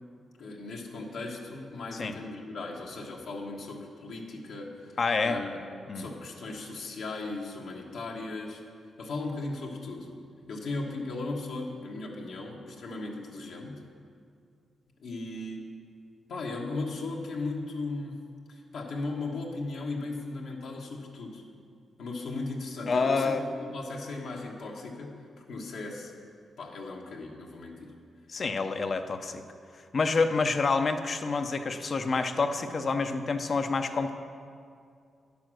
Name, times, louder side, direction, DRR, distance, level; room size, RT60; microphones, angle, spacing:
voice 1, 0.4-5.0 5.2-5.6 5.9-8.6 9.0-10.1 10.5-13.8 15.0-15.7 16.3-18.2 18.5-21.4 22.0-26.1 26.6-27.9, left 3 dB, 80° left, -1 dB, 1.4 m, -37 dB
voice 2, 5.0-5.4 5.9-6.1 22.9-23.4 28.3-29.4 29.9-34.1, left 4 dB, 50° left, 8 dB, 0.7 m, -27 dB
9.9 x 7.0 x 6.2 m, 2.3 s
supercardioid pair, 55°, 0 cm